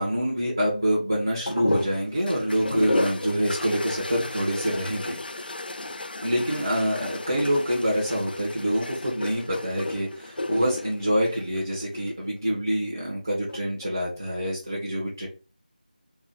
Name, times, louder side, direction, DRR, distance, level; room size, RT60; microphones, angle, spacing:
voice 1, 0.0-5.5 6.2-15.3, equal, 25° right, -5 dB, 0.5 m, -26 dB
sound 1, 1.5-12.1 13.3-13.9, left 2 dB, 85° left, 0.4 m, -33 dB
2.6 x 2.0 x 3.4 m, 0.33 s
figure-of-eight pair, 180°, 5 cm